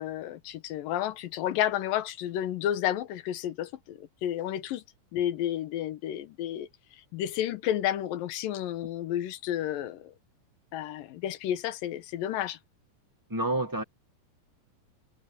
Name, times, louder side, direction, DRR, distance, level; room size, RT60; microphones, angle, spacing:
voice 1, 0.0-4.8 5.1-6.7 7.1-10.1 10.7-12.6, left 11 dB, 85° left, 2.8 m, -31 dB
voice 2, 13.3-13.8, right 2 dB, 25° right, 0.4 m, -28 dB
omnidirectional pair, 3.9 m